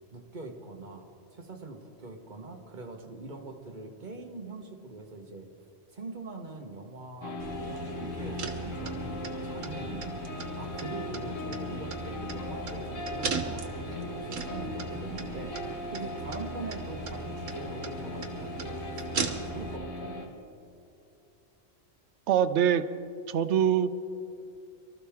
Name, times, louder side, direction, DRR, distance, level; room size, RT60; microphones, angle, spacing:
voice 1, 0.1-5.5 5.9-20.3, right 3 dB, 40° right, 4 dB, 1.3 m, -43 dB
sound 1, 7.2-20.3, left 2 dB, 75° left, 1.9 m, -39 dB
sound 2, 7.4-19.8, right 4 dB, 85° right, 1.4 m, -38 dB
voice 2, 22.3-22.8 23.3-24.0, right 9 dB, 70° right, 12 dB, 0.9 m, -24 dB
23.5 x 13.5 x 3.5 m, 2.6 s
omnidirectional pair, 1.3 m